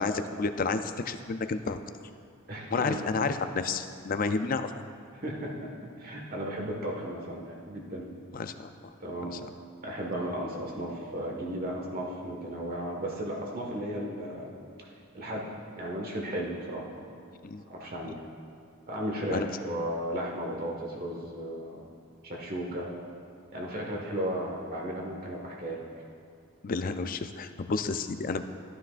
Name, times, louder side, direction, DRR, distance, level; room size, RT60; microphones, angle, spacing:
voice 1, 0.0-1.8 2.7-4.7 8.3-8.9 9.2-9.5 17.4-17.6 18.0-18.2 19.3-19.5 26.6-28.4, left 4 dB, 40° left, 9 dB, 0.4 m, -31 dB
voice 2, 2.5-3.1 5.1-5.7 6.0-8.1 9.0-9.4 9.8-14.9 15.1-16.9 17.7-18.2 18.9-21.9 22.2-22.9 23.5-25.8, right 1 dB, 45° right, -1 dB, 1.5 m, -35 dB
13.5 x 9.6 x 2.5 m, 2.5 s
head